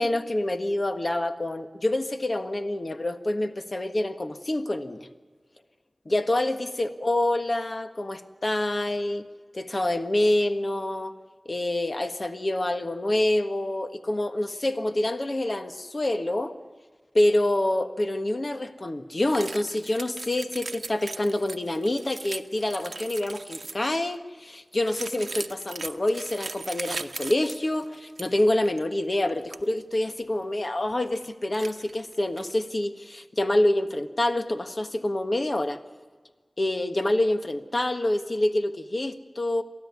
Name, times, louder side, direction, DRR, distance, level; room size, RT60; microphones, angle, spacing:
voice 1, 0.0-5.1 6.0-9.3 9.5-11.1 11.4-16.5 17.1-35.8 36.6-39.6, left 1 dB, 50° left, 8 dB, 1.5 m, -27 dB
sound 1, 19.3-23.9 24.9-28.4 28.7-28.8 29.2-29.6 30.2-30.3 30.9-31.3 31.5-32.6, right 3 dB, 75° right, 0.8 m, -39 dB
30.0 x 13.0 x 9.7 m, 1.4 s
wide cardioid pair, 65°, 0 cm